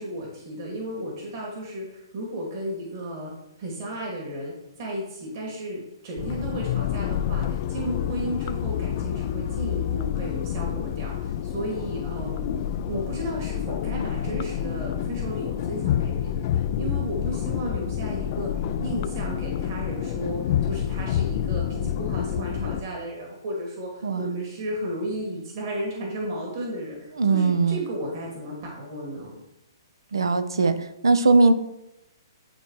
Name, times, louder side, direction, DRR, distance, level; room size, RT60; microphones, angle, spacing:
voice 1, 0.0-3.3 3.6-12.5 12.8-29.3, right 1 dB, 50° right, -2 dB, 2.4 m, -34 dB
sound 1, 6.2-22.8, left 10 dB, 45° left, 0.3 m, -28 dB
voice 2, 27.2-27.8 30.1-31.5, right 3 dB, 75° right, 11 dB, 0.7 m, -20 dB
10.5 x 4.6 x 3.1 m, 0.89 s
hypercardioid pair, 130°, 2 cm